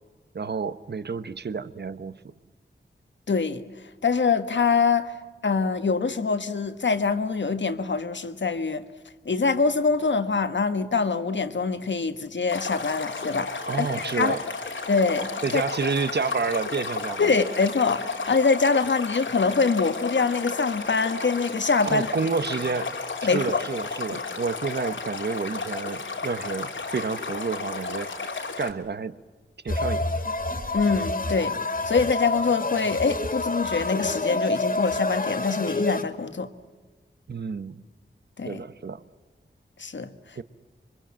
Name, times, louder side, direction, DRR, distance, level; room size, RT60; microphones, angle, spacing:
voice 1, 0.3-2.3 13.7-14.4 15.4-17.3 21.8-23.0 23.3-28.1 28.6-29.2 29.6-30.1 37.3-37.8 38.5-39.0 40.4-40.5, right 5 dB, 60° right, 1.1 m, -29 dB
voice 2, 3.3-3.6 4.0-5.2 5.4-8.8 9.2-14.4 14.9-15.6 17.2-22.1 23.2-23.7 30.7-31.5 31.8-36.5 38.4-38.6 39.8-40.4, left 4 dB, 70° left, 1.5 m, -24 dB
Stream, 12.5-28.7, left 4 dB, 90° left, 2.9 m, -33 dB
sound 1, 29.7-36.0, left 2 dB, 50° left, 2.4 m, -28 dB
26.5 x 23.5 x 7.5 m
wide cardioid pair, 90°, 19 cm